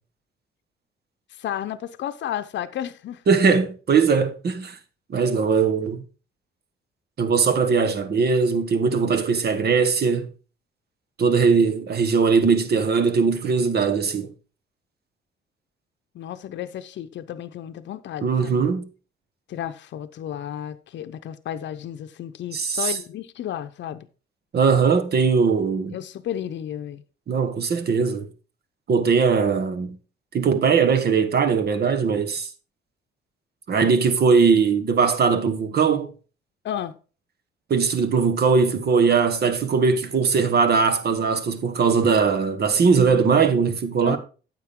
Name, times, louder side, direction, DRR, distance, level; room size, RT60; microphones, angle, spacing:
voice 1, 1.3-3.2 16.1-18.7 19.5-24.1 25.9-27.0 36.6-37.0 44.0-44.2, left 10 dB, 65° left, 0.8 m, -32 dB
voice 2, 3.3-4.8 5.1-6.0 7.2-10.3 11.2-14.3 18.2-18.9 22.5-23.0 24.5-25.9 27.3-28.3 28.9-30.0 30.3-32.5 33.7-36.1 37.7-44.2, right 5 dB, 55° right, 1.5 m, -20 dB
9.5 x 7.5 x 3.7 m
cardioid pair, 90°, 20 cm